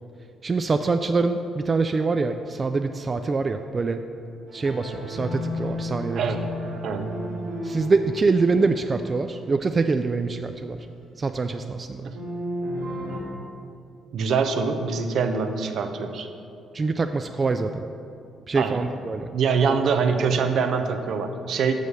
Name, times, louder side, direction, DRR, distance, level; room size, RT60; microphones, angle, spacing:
voice 1, 0.4-4.0 4.5-6.2 7.6-10.8 11.2-12.1 16.7-17.8 18.5-19.3, right 4 dB, 35° right, 7 dB, 0.3 m, -24 dB
sound 1, 4.5-9.3 12.1-13.2, left 1 dB, 90° right, 1.5 m, -33 dB
voice 2, 14.1-16.3 18.5-18.8 19.3-21.7, right 5 dB, 70° right, 7 dB, 0.6 m, -24 dB
6.4 x 5.4 x 6.3 m, 2.5 s
cardioid pair, 90°, 0 cm